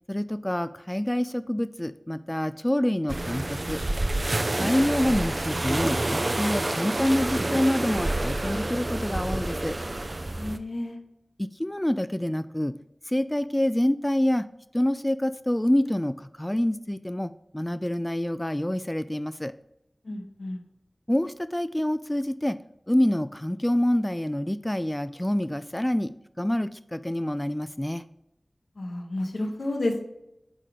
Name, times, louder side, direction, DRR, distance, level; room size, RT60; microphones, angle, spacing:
voice 1, 0.1-3.8 4.6-9.8 11.4-12.7 13.1-14.4 14.7-19.5 21.1-22.6 22.9-26.1 26.4-28.0, left 1 dB, 15° left, 13 dB, 0.3 m, -26 dB
sound 1, 3.1-10.6, right 2 dB, 50° right, 0.6 m, -28 dB
voice 2, 10.3-11.0 20.0-20.6 28.8-30.0, left 1 dB, 90° left, 3 dB, 1.3 m, -31 dB
8.5 x 3.8 x 5.0 m, 0.83 s
wide cardioid pair, 50°, 0 cm